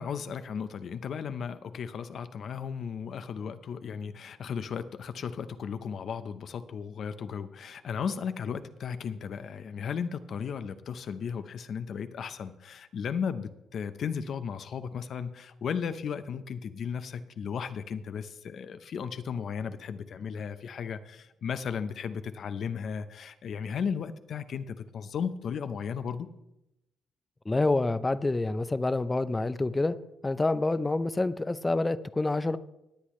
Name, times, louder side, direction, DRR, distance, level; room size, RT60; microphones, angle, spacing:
voice 1, 0.0-26.3, left 6 dB, 60° left, 11 dB, 0.7 m, -35 dB
voice 2, 27.5-30.0 30.2-32.6, left 2 dB, 20° left, 14 dB, 0.5 m, -27 dB
18.0 x 8.3 x 3.2 m, 0.89 s
cardioid pair, 90°, 0 cm